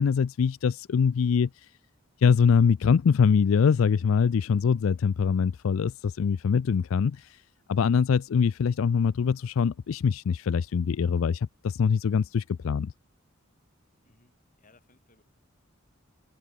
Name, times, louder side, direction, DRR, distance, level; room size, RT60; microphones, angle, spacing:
voice 1, 0.0-1.7 2.2-7.4 7.7-12.9, left 6 dB, 70° left, 0.4 m, -23 dB
voice 2, 14.0-15.2, left 3 dB, 40° left, 5.4 m, -63 dB
head